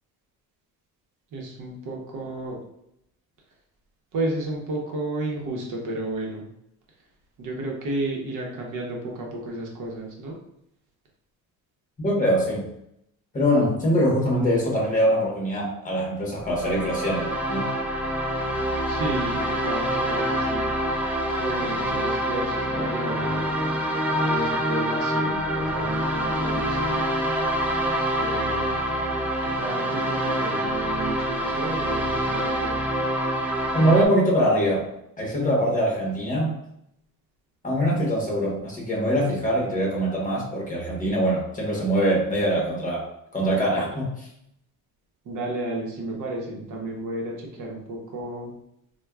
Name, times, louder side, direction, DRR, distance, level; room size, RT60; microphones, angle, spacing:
voice 1, 1.3-2.6 4.1-6.5 7.4-10.4 18.9-20.7 21.4-23.6 24.2-27.0 28.2-28.7 29.4-32.8 45.3-48.5, right 2 dB, 60° right, -1 dB, 0.9 m, -32 dB
voice 2, 12.0-12.7 13.3-17.7 33.7-34.9 35.2-36.6 37.6-43.1 43.3-44.3, equal, 20° left, -3 dB, 1.0 m, -23 dB
sound 1, 16.4-34.1, equal, 5° right, 0.4 m, -26 dB
4.2 x 2.2 x 2.3 m, 0.77 s
cardioid pair, 135°, 36 cm